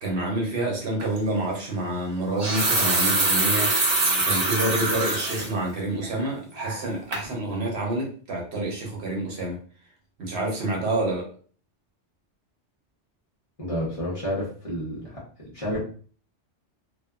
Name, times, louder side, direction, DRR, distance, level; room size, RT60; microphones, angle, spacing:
voice 1, 0.0-3.7 4.2-9.6 10.2-11.3, right 2 dB, 65° right, 1.0 m, -28 dB
sound 1, 1.0-1.2 2.2-5.5 6.0-6.1 6.6-6.9 7.1-7.3, right 2 dB, 40° right, 0.6 m, -24 dB
voice 2, 13.6-15.2 15.5-15.8, equal, 30° left, 1.1 m, -30 dB
2.7 x 2.3 x 2.3 m
omnidirectional pair, 1.2 m